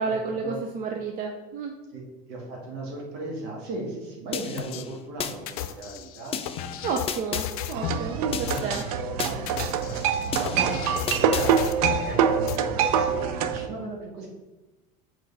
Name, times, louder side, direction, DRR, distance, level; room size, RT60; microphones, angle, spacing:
voice 1, 0.0-1.7 6.8-8.8, right 5 dB, 50° right, 2 dB, 0.7 m, -31 dB
voice 2, 2.3-6.4 8.5-14.3, right 2 dB, 70° right, -2 dB, 2.1 m, -36 dB
sound 1, 4.3-5.3 6.3-7.5 8.3-9.3 10.3-11.5, left 7 dB, 30° left, 0.5 m, -33 dB
sound 2, 4.6-4.8 5.5-8.1 8.5-8.8 9.3-12.1 12.5-12.6, left 11 dB, 90° left, 0.5 m, -34 dB
sound 3, 7.7-13.7, right 8 dB, 85° right, 0.5 m, -25 dB
7.1 x 4.5 x 3.5 m, 1.1 s
supercardioid pair, 105°, 19 cm